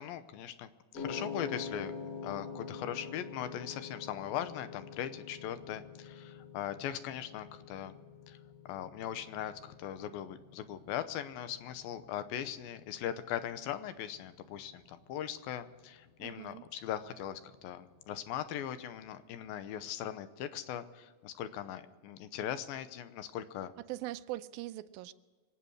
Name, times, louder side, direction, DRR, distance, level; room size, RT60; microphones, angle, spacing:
voice 1, 0.0-1.9 2.2-8.0 8.3-8.4 8.7-23.7, left 10 dB, 90° left, 2.6 m, -40 dB
sound 1, 1.0-19.2, left 5 dB, 65° left, 4.1 m, -48 dB
voice 2, 16.2-16.7 23.9-25.1, right 16 dB, 85° right, 2.4 m, -41 dB
25.5 x 8.5 x 6.2 m
omnidirectional pair, 4.2 m